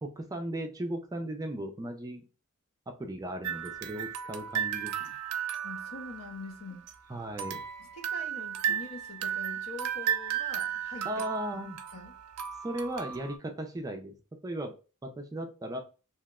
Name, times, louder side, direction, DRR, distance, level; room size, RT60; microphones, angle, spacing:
voice 1, 0.0-2.2 3.0-5.2 7.1-7.6 11.0-11.8 12.6-14.1 14.4-14.7 15.0-15.8, right 1 dB, 15° right, 0.3 m, -36 dB
sound 1, 3.4-7.0 7.4-13.4, right 9 dB, 80° right, 0.4 m, -35 dB
voice 2, 5.6-6.8 7.8-11.1 11.5-12.1, left 3 dB, 70° left, 0.7 m, -44 dB
2.8 x 2.1 x 3.5 m
head